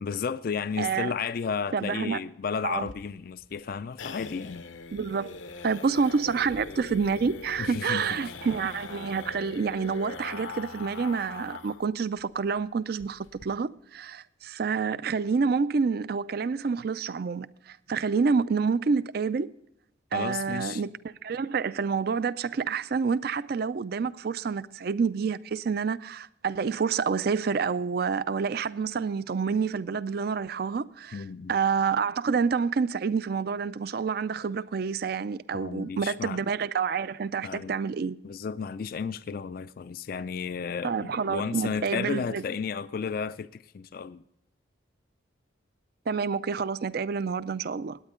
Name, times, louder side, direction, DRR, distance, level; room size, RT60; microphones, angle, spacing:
voice 1, 0.0-4.6 7.6-8.0 20.1-20.8 31.1-31.5 35.5-36.4 37.4-37.8 38.2-44.2, left 6 dB, 45° left, 0.3 m, -33 dB
voice 2, 0.8-1.1 1.7-2.2 2.6-2.9 4.9-5.4 5.6-19.5 20.1-20.9 21.2-38.2 40.8-42.4 46.1-48.0, right 5 dB, 50° right, 0.4 m, -28 dB
sound 1, 2.8-11.9 12.2-12.3 12.6-12.7 13.0-13.5, left 4 dB, 75° left, 0.8 m, -41 dB
18.5 x 9.1 x 3.7 m
head